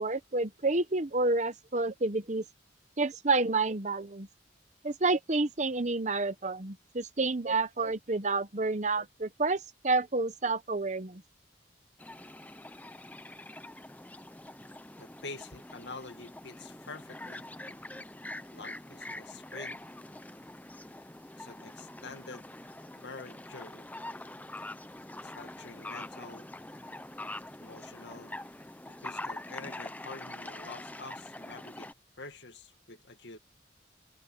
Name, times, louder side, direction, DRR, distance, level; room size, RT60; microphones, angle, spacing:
voice 1, 0.0-2.4 3.0-4.3 4.8-11.2, right 3 dB, 40° right, 1.0 m, -29 dB
sound 1, 12.0-31.9, left 1 dB, 10° left, 0.7 m, -44 dB
voice 2, 15.0-17.5 18.5-19.8 21.4-22.5 22.9-23.9 25.2-26.5 27.6-28.4 28.9-33.4, left 3 dB, 70° left, 2.2 m, -47 dB
open air
head